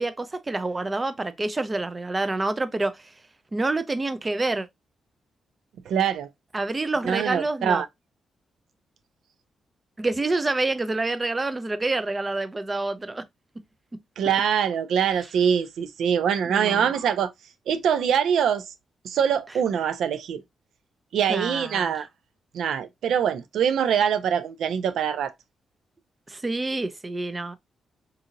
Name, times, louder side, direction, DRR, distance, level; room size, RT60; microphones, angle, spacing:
voice 1, 0.0-3.1 3.5-4.7 6.5-7.8 10.0-13.2 14.2-14.3 16.4-16.9 21.3-21.9 26.3-27.5, right 2 dB, 25° right, 0.5 m, -27 dB
voice 2, 5.9-6.3 7.0-7.9 14.2-17.3 17.7-18.6 19.0-20.4 21.1-22.1 22.5-25.3, right 8 dB, 80° right, 0.4 m, -24 dB
3.9 x 2.7 x 2.5 m
cardioid pair, 80°, 0 cm